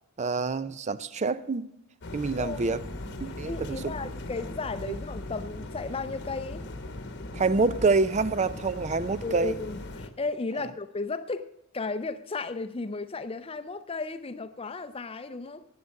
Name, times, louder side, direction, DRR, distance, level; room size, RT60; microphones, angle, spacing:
voice 1, 0.2-1.7 2.1-2.8 3.2-3.8 7.3-9.6, right 4 dB, 35° right, 0.4 m, -26 dB
sound 1, 2.0-10.1, left 2 dB, 55° left, 1.0 m, -39 dB
voice 2, 3.4-6.6 9.2-11.5 11.7-15.6, left 3 dB, 25° left, 0.6 m, -34 dB
11.0 x 9.6 x 6.4 m
head